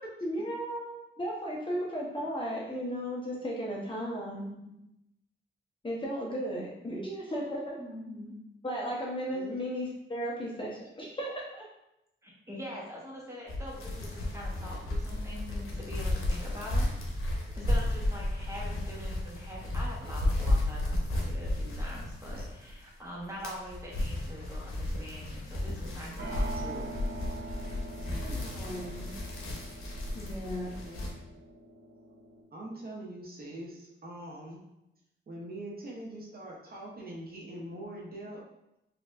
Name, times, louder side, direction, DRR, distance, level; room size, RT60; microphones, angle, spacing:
voice 1, 0.2-4.5 5.8-7.8 8.6-11.6 28.1-29.1 30.1-30.7, equal, 25° left, -4 dB, 0.8 m, -35 dB
voice 2, 4.1-4.8 7.8-8.3 12.2-16.9 17.6-26.9, equal, 15° right, -4 dB, 1.1 m, -43 dB
sound 1, 13.5-22.8 23.2-31.1, left 1 dB, 90° left, 0.7 m, -33 dB
sound 2, 14.0-17.7 17.9-18.0 26.2-32.4, right 2 dB, 85° right, 1.1 m, -45 dB
voice 3, 30.8-31.2 32.5-34.6 35.3-38.4, right 1 dB, 45° right, -3 dB, 0.7 m, -43 dB
4.2 x 2.6 x 2.4 m, 0.86 s
wide cardioid pair, 110°, 21 cm